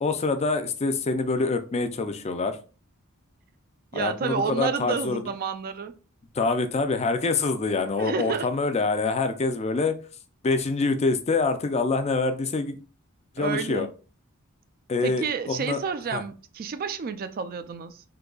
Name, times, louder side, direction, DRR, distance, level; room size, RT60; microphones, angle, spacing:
voice 1, 0.0-2.6 3.9-5.2 6.3-10.0 10.4-12.8 13.4-13.9 14.9-15.8 16.1-16.2, left 3 dB, 30° left, 0.4 m, -25 dB
voice 2, 3.9-5.9 8.0-8.5 13.4-13.9 15.0-18.0, right 6 dB, 40° right, 0.3 m, -30 dB
3.9 x 2.7 x 2.3 m
head